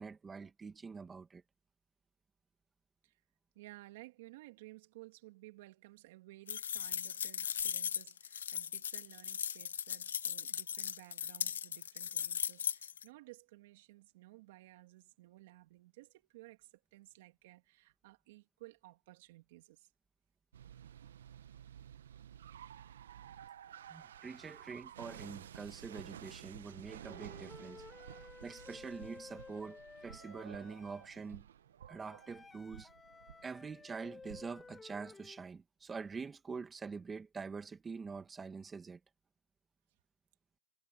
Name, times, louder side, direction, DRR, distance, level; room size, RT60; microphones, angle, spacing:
voice 1, 0.0-1.4 23.9-27.8 28.4-31.4 31.9-32.9 33.4-39.0, right 5 dB, 10° right, 1.9 m, -45 dB
voice 2, 3.5-19.9, right 19 dB, 40° right, 2.9 m, -56 dB
sound 1, 6.5-13.0, left 8 dB, 80° left, 1.0 m, -38 dB
sound 2, 20.5-34.7, right 10 dB, 65° right, 1.1 m, -53 dB
Wind instrument woodwind instrument, 27.0-31.1 32.0-35.4, left 4 dB, 5° left, 3.6 m, -54 dB
hypercardioid pair, 165°, 0 cm